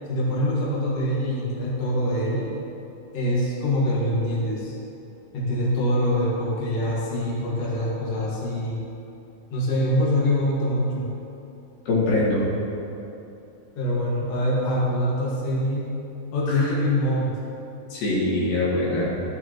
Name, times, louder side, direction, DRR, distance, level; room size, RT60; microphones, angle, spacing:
voice 1, 0.1-2.5 3.1-4.7 5.3-8.8 9.5-11.1 13.8-15.9 16.3-17.4, left 1 dB, 45° left, -6 dB, 2.6 m, -24 dB
voice 2, 11.9-12.5 16.5-16.7 17.9-19.2, left 2 dB, 70° left, -7 dB, 3.7 m, -23 dB
14.5 x 9.7 x 3.1 m, 2.8 s
omnidirectional pair, 4.1 m